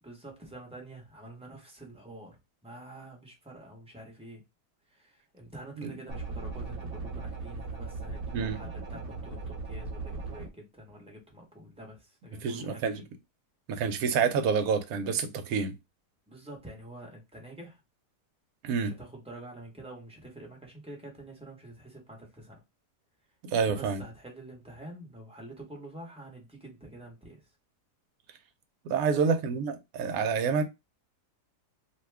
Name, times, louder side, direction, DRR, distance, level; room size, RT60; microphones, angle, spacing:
voice 1, 0.0-4.4 4.9-13.1 16.3-17.8 18.7-22.6 23.5-27.5 29.0-29.2, right 1 dB, 5° right, 0.7 m, -47 dB
sound 1, 6.1-10.5, right 3 dB, 40° right, 0.9 m, -38 dB
voice 2, 12.4-13.0 13.7-15.7 18.6-18.9 23.4-24.0 28.8-30.6, right 6 dB, 70° right, 1.0 m, -28 dB
2.8 x 2.2 x 3.3 m
omnidirectional pair, 1.7 m